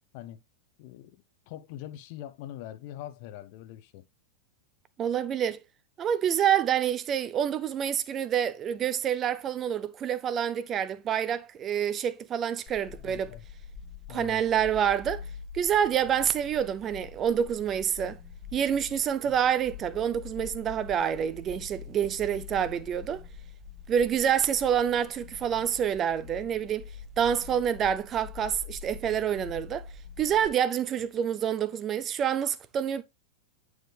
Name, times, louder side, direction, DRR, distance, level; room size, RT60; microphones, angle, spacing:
voice 1, 0.8-4.1 13.0-13.4 14.1-14.4 19.2-19.3, left 12 dB, 45° left, 0.7 m, -43 dB
voice 2, 5.0-5.6 6.0-13.3 14.1-15.2 15.5-18.2 18.5-23.2 23.9-26.8 27.2-29.8 30.2-33.0, right 9 dB, 30° right, 0.5 m, -27 dB
sound 1, 12.7-30.5, left 6 dB, 25° left, 1.5 m, -45 dB
9.1 x 4.7 x 3.2 m
figure-of-eight pair, 90°, 0 cm